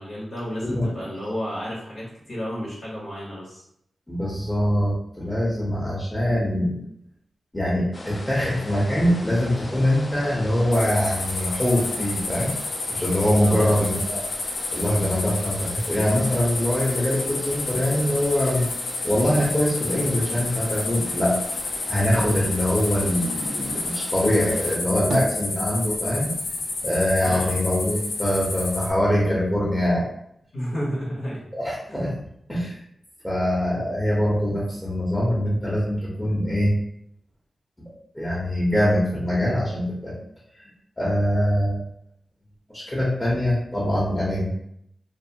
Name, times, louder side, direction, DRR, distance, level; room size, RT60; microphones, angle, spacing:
voice 1, 0.0-3.6 13.3-13.8 27.2-27.5 30.5-31.4 31.9-32.2, equal, 70° left, -7 dB, 1.0 m, -32 dB
voice 2, 4.1-6.8 7.5-12.5 12.9-14.2 14.7-18.7 19.0-21.3 21.9-26.3 26.8-30.0 31.5-32.1 32.5-32.8 33.2-36.7 38.1-40.1 40.5-40.7 41.0-41.8 42.7-44.5, equal, 15° left, -6 dB, 0.9 m, -23 dB
sound 1, 7.9-24.8, left 1 dB, 40° left, 0.6 m, -40 dB
sound 2, 10.7-28.9, left 3 dB, 90° left, 0.4 m, -30 dB
sound 3, 25.1-26.1 26.4-28.8 29.2-30.1, right 1 dB, 85° right, 0.5 m, -34 dB
2.6 x 2.2 x 2.7 m, 0.74 s
cardioid pair, 55°, 0 cm